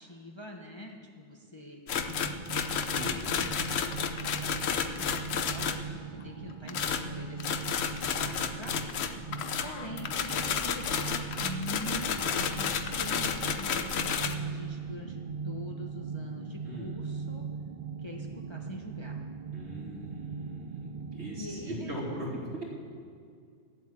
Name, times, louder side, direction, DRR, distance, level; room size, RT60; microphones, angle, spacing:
voice 1, 0.0-1.8 2.1-2.5 2.8-3.7 4.0-7.7 8.0-9.2 9.6-17.4 18.0-19.2 21.4-22.1, left 1 dB, 25° left, 0 dB, 1.0 m, -44 dB
sound 1, 1.9-5.9 6.7-14.3, left 7 dB, 65° left, 1.0 m, -32 dB
sound 2, 1.9-21.8, right 5 dB, 90° right, 0.3 m, -40 dB
voice 2, 2.9-3.2 16.7-17.0 19.5-22.6, right 1 dB, 60° right, -4 dB, 3.4 m, -40 dB
13.0 x 8.0 x 8.7 m, 2.2 s
omnidirectional pair, 1.3 m